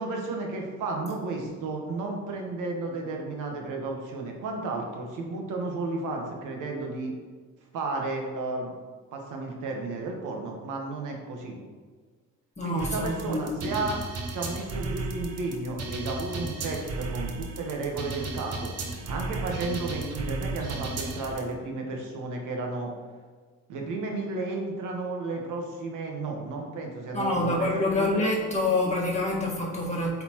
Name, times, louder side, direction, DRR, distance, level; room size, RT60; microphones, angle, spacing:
voice 1, 0.0-7.1 7.7-8.7 9.1-11.6 12.6-14.0 14.3-18.7 19.1-22.9 23.7-28.2, right 3 dB, 85° right, 1 dB, 1.1 m, -33 dB
voice 2, 12.6-13.7 27.1-30.2, left 2 dB, 25° left, -3 dB, 1.5 m, -27 dB
sound 1, 12.8-21.4, right 3 dB, 55° right, 1.0 m, -34 dB
8.0 x 4.2 x 2.9 m, 1.5 s
cardioid pair, 90°, 30 cm